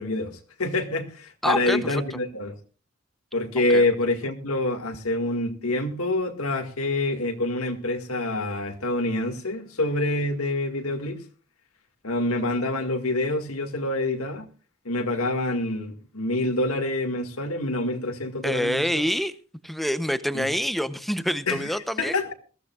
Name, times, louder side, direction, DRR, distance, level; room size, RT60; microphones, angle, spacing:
voice 1, 0.0-2.5 3.3-11.2 12.0-14.5 14.9-18.8 20.3-20.5 21.5-21.7 22.0-22.3, left 2 dB, 85° left, 5 dB, 2.1 m, -26 dB
voice 2, 1.4-2.2 3.7-3.8 18.4-19.3 19.6-22.2, equal, ahead, 12 dB, 0.7 m, -26 dB
21.5 x 15.0 x 2.4 m, 0.37 s
head